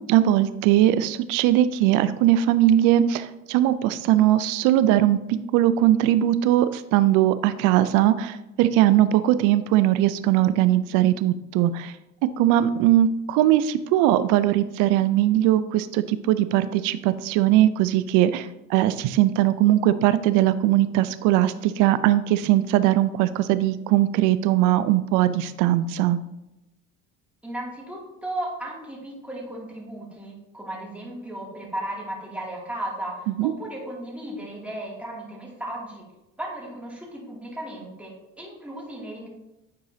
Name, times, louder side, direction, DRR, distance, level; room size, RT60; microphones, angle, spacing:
voice 1, 0.1-5.2 5.5-11.9 12.4-26.2 33.4-33.5, right 13 dB, 75° right, 13 dB, 0.5 m, -20 dB
voice 2, 27.4-36.1 36.4-39.3, right 1 dB, 5° right, -4 dB, 2.5 m, -35 dB
9.3 x 4.8 x 2.8 m, 0.93 s
supercardioid pair, 95°, 31 cm